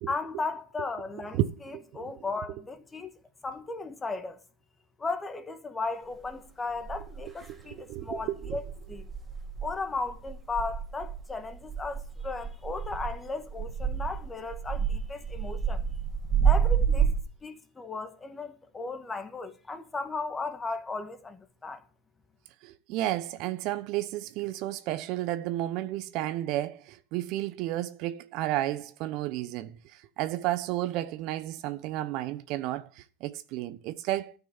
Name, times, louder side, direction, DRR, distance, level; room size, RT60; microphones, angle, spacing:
voice 1, 0.1-1.4 1.6-3.1 3.4-4.4 5.0-8.6 8.9-9.1 9.6-15.8 16.4-17.1 17.4-21.8, left 3 dB, 15° left, 1.9 m, -36 dB
voice 2, 1.3-2.1 7.5-8.6 22.6-34.3, right 14 dB, 55° right, 0.9 m, -32 dB
sound 1, 6.2-6.3 6.8-7.5 7.9-17.2, right 7 dB, 10° right, 2.9 m, -29 dB
13.5 x 6.0 x 7.2 m
hypercardioid pair, 85°, 0 cm